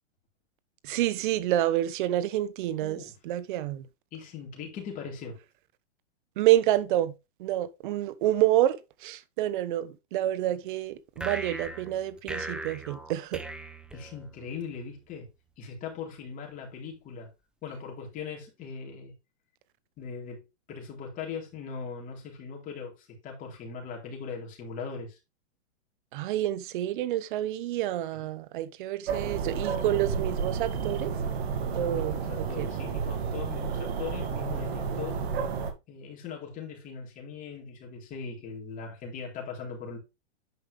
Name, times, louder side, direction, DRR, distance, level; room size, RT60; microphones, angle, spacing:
voice 1, 0.8-3.9 6.4-7.1 7.4-13.4 26.1-31.1 31.7-32.7, right 13 dB, 45° right, 1.0 m, -28 dB
voice 2, 2.8-3.2 4.1-5.4 13.9-15.3 15.6-17.3 17.6-19.1 20.0-25.2 28.1-28.3 31.7-35.3 35.9-40.0, left 5 dB, 25° left, 3.8 m, -40 dB
sound 1, 11.2-14.6, right 2 dB, ahead, 0.6 m, -39 dB
sound 2, 29.1-35.7, right 6 dB, 65° right, 2.3 m, -31 dB
9.7 x 5.4 x 3.5 m
hypercardioid pair, 150°, 34 cm